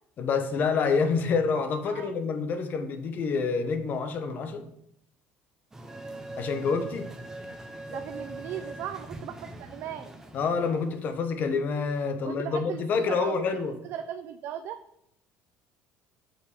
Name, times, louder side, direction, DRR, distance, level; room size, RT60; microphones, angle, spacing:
voice 1, 0.2-4.6 6.4-7.1 10.3-13.7, left 5 dB, 45° left, 8 dB, 1.2 m, -27 dB
voice 2, 1.9-2.2 7.9-10.1 12.2-14.8, right 10 dB, 60° right, 7 dB, 0.6 m, -38 dB
sound 1, 5.7-11.3, right 2 dB, 10° right, 1.0 m, -41 dB
7.2 x 5.8 x 5.0 m, 0.75 s
cardioid pair, 130°, 4 cm